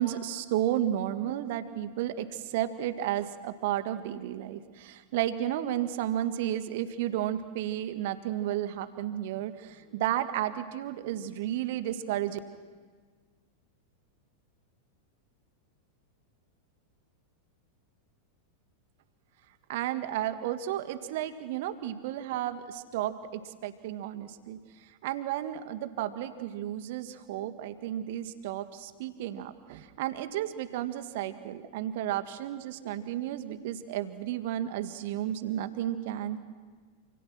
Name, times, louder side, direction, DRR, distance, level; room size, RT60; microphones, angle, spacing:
voice 1, 0.0-12.4 19.7-24.6 25.0-36.4, right 12 dB, 50° right, 10 dB, 1.8 m, -32 dB
29.0 x 27.5 x 6.2 m, 1.5 s
figure-of-eight pair, 90°, 0 cm